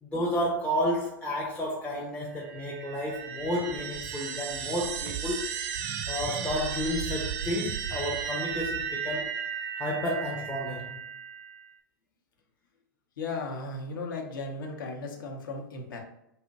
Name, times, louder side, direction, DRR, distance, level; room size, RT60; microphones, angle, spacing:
voice 1, 0.0-5.5 6.1-9.3 9.8-11.0, left 1 dB, 10° left, -3 dB, 0.5 m, -31 dB
sound 1, 2.4-11.7, right 8 dB, 45° right, 0.4 m, -35 dB
voice 2, 13.2-16.0, left 3 dB, 65° left, 2 dB, 0.7 m, -36 dB
2.7 x 2.1 x 3.9 m, 0.79 s
figure-of-eight pair, 100°, 12 cm